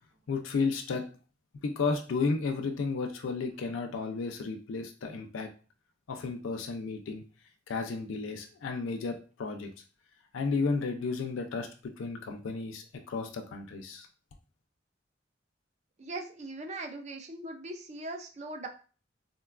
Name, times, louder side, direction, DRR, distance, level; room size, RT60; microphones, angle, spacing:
voice 1, 0.3-1.0 1.6-5.5 6.1-7.2 7.7-9.7 10.3-14.1, left 4 dB, 85° left, 4 dB, 0.4 m, -33 dB
voice 2, 16.0-18.7, right 2 dB, 35° right, 4 dB, 0.4 m, -40 dB
3.7 x 2.2 x 2.4 m, 0.37 s
head